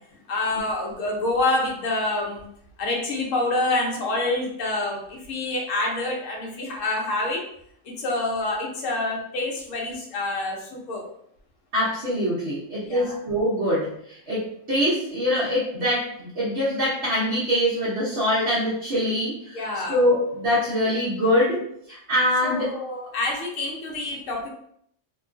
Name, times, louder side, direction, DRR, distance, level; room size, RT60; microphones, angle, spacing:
voice 1, 0.3-2.4 2.8-7.5 7.8-11.1 12.8-13.2 19.5-20.0 22.4-24.5, left 2 dB, 75° left, -1 dB, 1.1 m, -27 dB
voice 2, 11.7-19.6 19.9-22.8, equal, 60° right, -9 dB, 1.1 m, -24 dB
2.9 x 2.3 x 2.4 m, 0.69 s
omnidirectional pair, 1.3 m